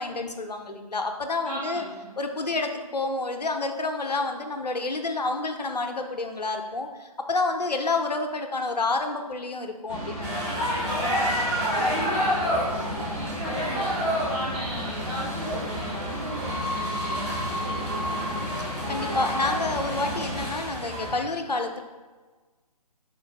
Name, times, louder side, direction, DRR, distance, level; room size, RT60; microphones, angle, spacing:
voice 1, 0.0-1.8 2.2-10.7 18.6-21.8, left 3 dB, 80° left, 6 dB, 0.5 m, -29 dB
voice 2, 1.4-2.1 11.8-18.3, right 1 dB, 55° right, -10 dB, 1.4 m, -37 dB
sound 1, 9.9-20.5, equal, 20° right, 1.0 m, -35 dB
sound 2, 10.2-21.2, equal, ahead, 1.3 m, -29 dB
4.3 x 2.3 x 4.0 m, 1.3 s
figure-of-eight pair, 140°, 20 cm